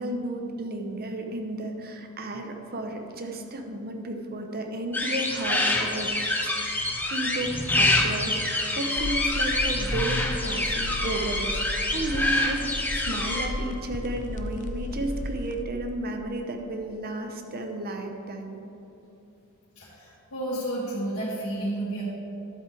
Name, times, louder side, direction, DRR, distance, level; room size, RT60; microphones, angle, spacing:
voice 1, 0.0-6.1 6.4-18.6, right 1 dB, 45° right, 4 dB, 0.9 m, -33 dB
sound 1, 4.9-13.5, left 2 dB, 10° left, 0.8 m, -26 dB
sound 2, 9.0-15.6, left 1 dB, 35° left, 0.4 m, -34 dB
voice 2, 19.8-22.0, right 1 dB, 65° left, -11 dB, 2.3 m, -31 dB
12.0 x 8.0 x 3.5 m, 3.0 s
head